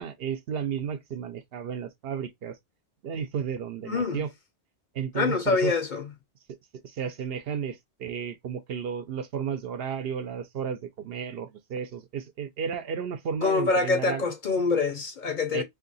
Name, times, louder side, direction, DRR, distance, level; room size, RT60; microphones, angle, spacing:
voice 1, 0.0-2.6 3.0-4.3 4.9-5.7 6.8-14.3 15.5-15.6, right 7 dB, 65° right, 0.8 m, -33 dB
voice 2, 3.9-4.2 5.1-6.1 13.4-15.6, left 4 dB, 55° left, 0.7 m, -25 dB
2.7 x 2.5 x 3.9 m
omnidirectional pair, 1.1 m